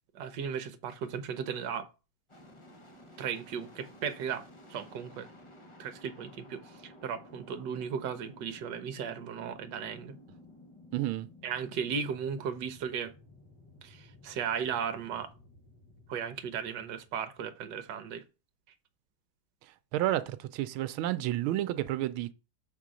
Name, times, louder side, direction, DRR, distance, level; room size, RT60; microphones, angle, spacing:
voice 1, 0.1-1.9 3.2-5.3 5.8-10.1 11.4-13.1 13.8-15.3 16.1-18.2, right 7 dB, 65° right, 1.4 m, -36 dB
sound 1, 2.3-18.0, left 1 dB, 20° left, 0.8 m, -55 dB
voice 2, 10.9-11.3 19.9-22.3, right 14 dB, 90° right, 1.4 m, -30 dB
7.0 x 3.7 x 6.1 m
omnidirectional pair, 2.2 m